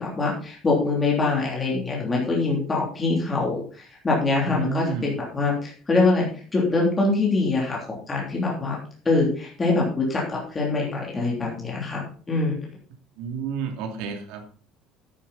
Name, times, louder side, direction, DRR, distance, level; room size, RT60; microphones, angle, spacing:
voice 1, 0.0-6.3 6.5-8.8 9.0-12.6, left 3 dB, 15° left, -3 dB, 3.1 m, -24 dB
voice 2, 4.4-5.1 13.2-14.5, right 6 dB, 70° right, 4 dB, 2.8 m, -31 dB
10.0 x 9.9 x 4.2 m, 0.41 s
cardioid pair, 165°, 0 cm